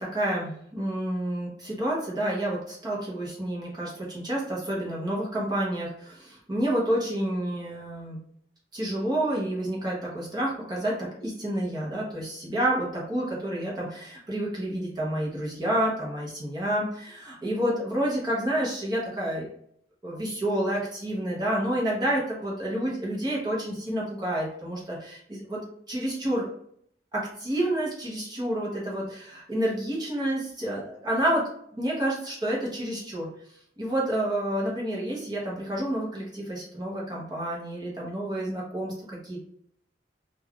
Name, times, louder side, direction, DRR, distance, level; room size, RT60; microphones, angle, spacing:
voice 1, 0.0-8.2 8.7-19.5 20.0-25.6 25.9-26.5 27.1-33.3 33.8-39.4, right 1 dB, 25° right, -5 dB, 0.8 m, -29 dB
2.5 x 2.3 x 3.5 m, 0.67 s
head